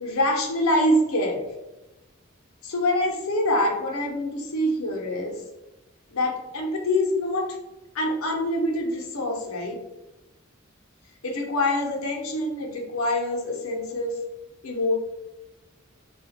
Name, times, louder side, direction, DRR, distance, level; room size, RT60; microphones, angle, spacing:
voice 1, 0.0-1.4 2.6-5.3 6.1-7.5 7.9-9.8 11.2-14.1 14.6-14.9, left 1 dB, 90° left, 1 dB, 0.7 m, -25 dB
2.3 x 2.1 x 3.5 m, 1.0 s
head